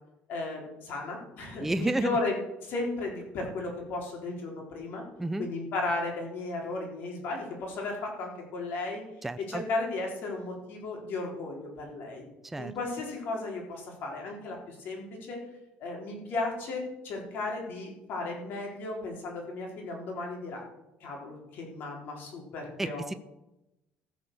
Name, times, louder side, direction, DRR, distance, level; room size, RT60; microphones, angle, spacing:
voice 1, 0.3-2.3 2.6-5.0 5.4-9.0 9.5-12.2 12.6-15.4 15.8-20.6 21.0-23.0, left 2 dB, 55° left, 0 dB, 3.9 m, -35 dB
voice 2, 1.6-2.1 5.2-5.5 9.2-9.6 12.5-12.7 22.8-23.1, right 2 dB, 5° right, 11 dB, 0.4 m, -30 dB
15.5 x 6.2 x 6.7 m, 0.90 s
cardioid pair, 155°, 4 cm